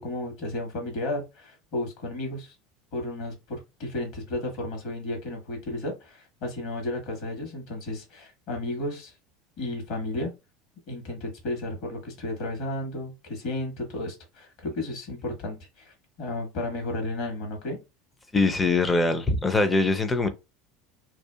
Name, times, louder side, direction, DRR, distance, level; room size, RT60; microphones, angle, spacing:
voice 1, 0.0-2.5 2.9-9.1 9.6-10.3 10.9-17.8, left 1 dB, 60° left, 1.5 m, -33 dB
voice 2, 18.3-20.3, left 3 dB, 20° left, 0.6 m, -22 dB
2.7 x 2.4 x 2.3 m
hypercardioid pair, 80°, 0 cm